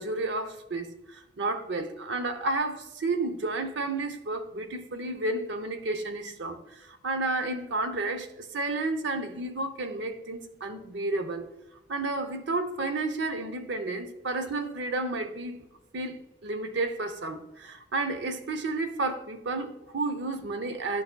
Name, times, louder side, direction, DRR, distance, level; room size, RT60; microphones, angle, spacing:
voice 1, 0.0-11.5 11.9-15.7 15.9-21.0, right 2 dB, 70° right, 0.7 m, -31 dB
10.5 x 5.6 x 2.2 m
head